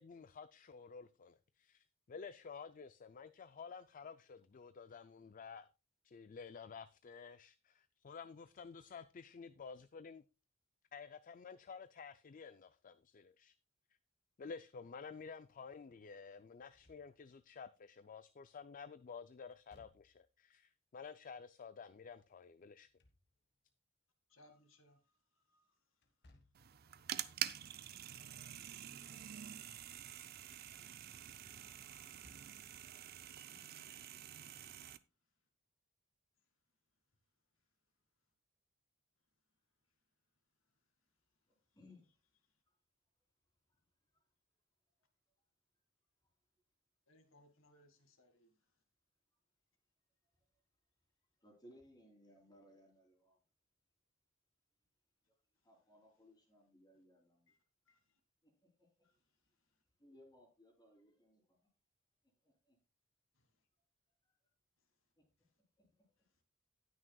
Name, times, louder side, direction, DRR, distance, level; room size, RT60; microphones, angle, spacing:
voice 1, 0.0-5.7 6.0-10.2 10.9-13.5 14.4-22.9, left 5 dB, 40° left, 0.4 m, -52 dB
Slam / Thump thud, 16.6-17.5 19.5-20.4 22.6-23.7 26.0-26.8 28.9-29.5 29.9-30.0 32.0-32.8, left 1 dB, 60° left, 1.5 m, -68 dB
voice 2, 24.3-25.0 25.3-25.7 29.1-29.4 31.0-31.3 32.4-32.7 33.5-33.9 47.1-48.5 57.5-57.6 57.9-58.2 63.4-63.5, left 1 dB, 75° left, 1.9 m, -69 dB
sound 1, 26.5-35.0, right 11 dB, 50° right, 0.5 m, -47 dB
voice 3, 41.5-42.1 43.7-43.8 44.1-44.2 50.4-50.5 51.4-53.4 55.6-57.5 58.4-58.9 60.0-61.7 62.4-62.8 65.1-65.2 65.8-66.0, left 1 dB, 20° left, 3.3 m, -64 dB
18.5 x 6.3 x 2.3 m
head